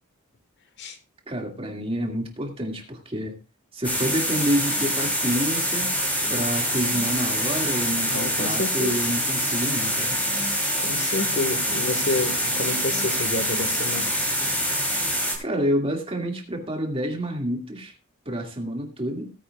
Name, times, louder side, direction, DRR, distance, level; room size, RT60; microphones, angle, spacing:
voice 1, 1.3-3.4 3.7-6.0 6.3-10.2 15.4-17.9 18.3-19.3, equal, 25° right, 2 dB, 2.2 m, -28 dB
sound 1, 3.8-15.4, equal, 5° left, 3.3 m, -25 dB
voice 2, 8.1-8.9 10.8-14.1, left 2 dB, 55° left, 9 dB, 1.5 m, -29 dB
17.5 x 9.9 x 2.4 m, 0.27 s
head